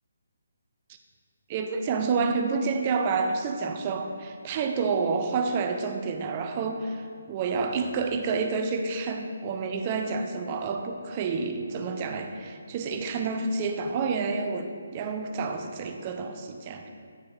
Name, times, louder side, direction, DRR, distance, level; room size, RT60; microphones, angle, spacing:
voice 1, 1.5-16.9, right 4 dB, 30° right, 5 dB, 0.5 m, -29 dB
8.8 x 3.6 x 4.9 m, 2.3 s
hypercardioid pair, 155°, 0 cm